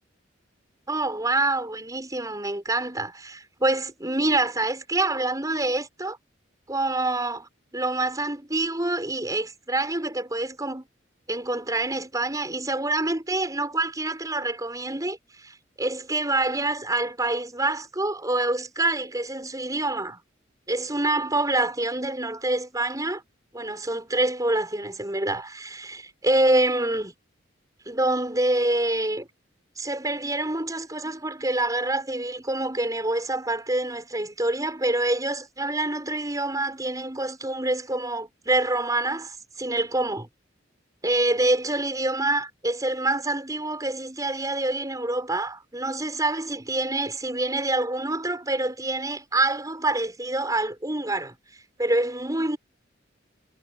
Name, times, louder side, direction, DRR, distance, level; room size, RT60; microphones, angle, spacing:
voice 1, 0.9-6.2 6.7-10.9 11.3-20.2 20.7-23.2 23.5-27.1 27.9-29.3 29.8-40.3 41.0-51.4 51.8-52.6, right 2 dB, 20° right, 7.1 m, -26 dB
head